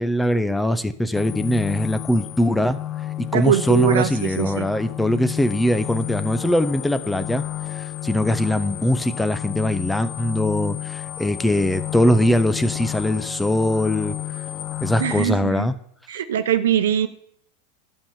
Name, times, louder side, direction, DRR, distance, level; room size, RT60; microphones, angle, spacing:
voice 1, 0.0-2.8 3.2-7.4 7.7-14.1 14.8-15.7, left 1 dB, 5° left, 13 dB, 0.7 m, -21 dB
sound 1, 1.1-15.3, left 13 dB, 45° left, 0.6 m, -31 dB
voice 2, 3.3-4.7 15.0-15.7 16.1-17.1, right 10 dB, 75° right, 10 dB, 0.9 m, -22 dB
11.5 x 5.7 x 7.2 m, 0.68 s
hypercardioid pair, 95°, 0 cm